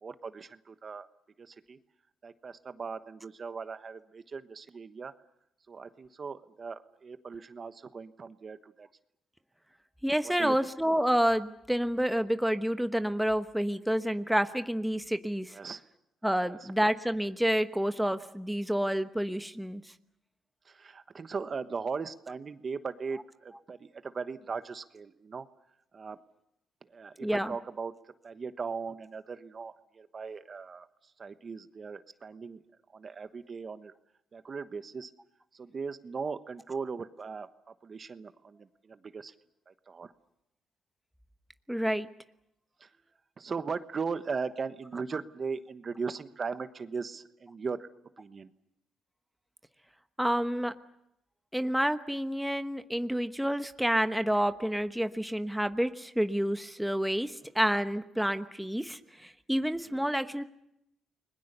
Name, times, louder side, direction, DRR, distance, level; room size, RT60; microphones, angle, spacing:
voice 1, 0.0-1.1 1.4-1.8 2.2-5.1 5.7-8.9 10.2-10.6 15.5-15.8 16.4-16.6 20.7-25.5 25.9-26.2 26.9-27.9 28.2-30.9 31.2-32.6 32.9-33.9 34.3-35.1 35.5-37.5 37.8-39.3 39.7-40.1 42.8-42.9 43.4-47.9 48.2-48.5 60.0-60.1, right 5 dB, 40° right, 11 dB, 1.2 m, -38 dB
voice 2, 10.0-15.6 16.2-19.8 27.2-27.5 41.7-42.1 50.2-50.7 51.5-60.4, equal, 5° right, 9 dB, 1.1 m, -29 dB
30.0 x 21.0 x 6.8 m, 0.80 s
cardioid pair, 90°, 0 cm